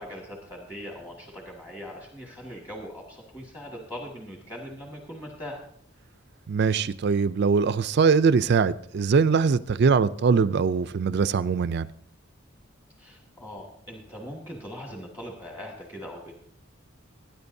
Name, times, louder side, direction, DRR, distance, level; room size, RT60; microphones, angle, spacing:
voice 1, 0.0-5.6 13.0-16.3, equal, 15° left, 1.8 m, -40 dB
voice 2, 6.5-11.9, right 5 dB, 55° right, 0.4 m, -22 dB
21.0 x 10.0 x 2.7 m
head